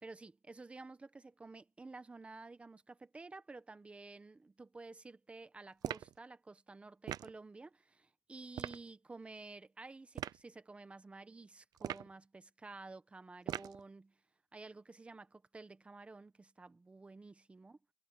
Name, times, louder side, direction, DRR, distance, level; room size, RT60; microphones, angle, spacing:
voice 1, 0.0-14.2 14.5-17.8, right 3 dB, 10° right, 1.0 m, -52 dB
sound 1, 5.8-6.2 7.1-7.4 8.5-8.8 10.1-10.4 11.8-12.2 13.5-13.8, right 11 dB, 25° right, 0.5 m, -40 dB
cardioid pair, 175°, 14 cm